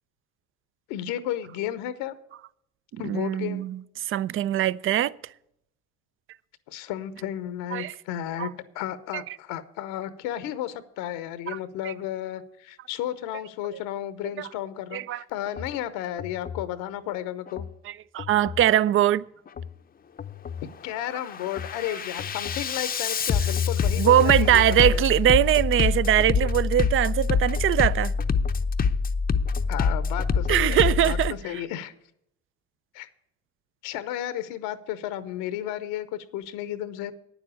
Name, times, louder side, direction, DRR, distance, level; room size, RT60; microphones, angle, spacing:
voice 1, 0.9-2.1 3.0-3.6 6.7-17.6 20.8-25.0 29.7-31.9 32.9-33.1 33.8-37.1, left 12 dB, 75° left, 0.8 m, -33 dB
voice 2, 2.9-5.1 7.7-7.9 8.4-8.5 11.5-11.6 11.8-11.9 14.4-14.5 14.9-15.2 18.1-19.2 24.0-28.1 30.5-31.4, right 12 dB, 40° right, 0.4 m, -22 dB
Bass drum, 15.5-15.7 16.2-16.7 17.5-17.7 18.2-18.7 19.5-19.7 20.2-20.7 21.1-31.3, left 5 dB, 25° left, 0.6 m, -26 dB
9.3 x 7.2 x 8.2 m
hypercardioid pair, 70°, 33 cm